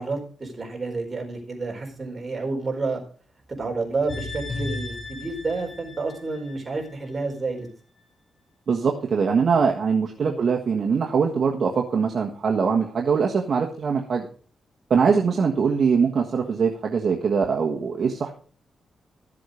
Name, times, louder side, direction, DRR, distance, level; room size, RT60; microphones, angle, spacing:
voice 1, 0.0-3.0 3.6-7.7 10.2-10.4, right 3 dB, 30° right, 1 dB, 4.5 m, -30 dB
sound 1, 4.1-7.3 7.7-7.8, left 3 dB, 65° left, 6.9 m, -35 dB
voice 2, 8.7-14.3 14.9-18.3, right 5 dB, 55° right, 1 dB, 1.5 m, -22 dB
14.0 x 7.7 x 5.1 m, 0.42 s
cardioid pair, 110°, 0 cm